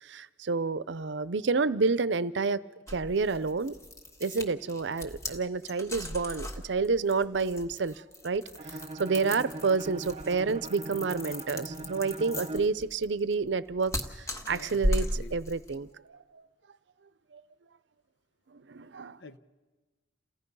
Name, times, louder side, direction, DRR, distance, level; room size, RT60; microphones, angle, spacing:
voice 1, 0.0-2.6 2.9-3.7 4.2-8.4 9.0-13.9 14.5-16.4 17.3-17.4 18.7-19.2, right 4 dB, 80° right, 0.6 m, -29 dB
sound 1, 2.9-15.8, equal, 15° left, 1.6 m, -36 dB
Bowed string instrument, 8.6-12.8, right 2 dB, 35° right, 0.6 m, -41 dB
voice 2, 14.4-15.3 19.2-19.4, left 3 dB, 80° left, 0.9 m, -46 dB
29.0 x 16.5 x 5.5 m
head